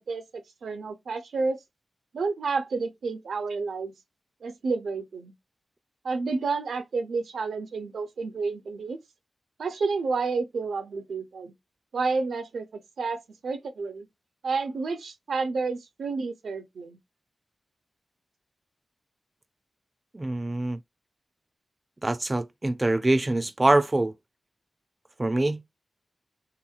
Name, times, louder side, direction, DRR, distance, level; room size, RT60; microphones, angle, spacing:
voice 1, 0.0-1.6 2.1-3.9 4.4-5.3 6.0-9.0 9.6-11.5 11.9-14.1 14.4-17.0, right 4 dB, 85° right, 0.5 m, -30 dB
voice 2, 20.1-20.8 22.0-24.1 25.2-25.6, right 2 dB, 30° right, 0.4 m, -24 dB
3.4 x 2.9 x 2.3 m
cardioid pair, 60°, 0 cm